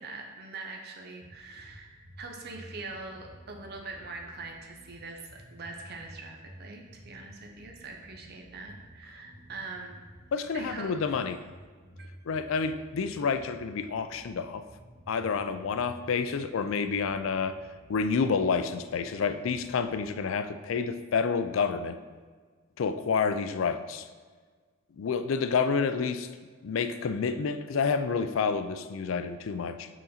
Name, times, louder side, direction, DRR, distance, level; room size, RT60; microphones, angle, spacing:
voice 1, 0.0-10.0 10.4-11.2 12.0-12.1, right 3 dB, 50° right, 2 dB, 0.6 m, -43 dB
sound 1, 1.2-20.0, equal, 70° right, 1.4 m, -52 dB
voice 2, 10.3-11.4 12.3-14.6 15.1-17.6 17.9-22.0 22.8-24.1 25.0-26.3 26.6-29.9, left 5 dB, 70° left, 10 dB, 0.4 m, -29 dB
6.3 x 4.0 x 4.1 m, 1.5 s
head